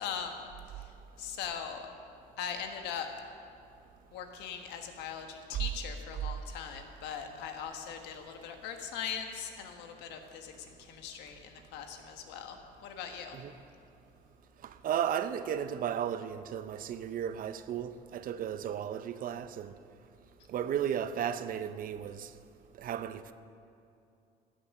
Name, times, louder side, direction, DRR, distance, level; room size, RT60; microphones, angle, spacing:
voice 1, 0.0-1.9 2.4-3.1 4.1-13.4, left 7 dB, 90° left, 1.4 m, -40 dB
voice 2, 14.6-19.7 20.5-22.3 22.8-23.3, right 9 dB, 55° right, 0.7 m, -34 dB
15.0 x 8.7 x 6.5 m
cardioid pair, 110°, 17 cm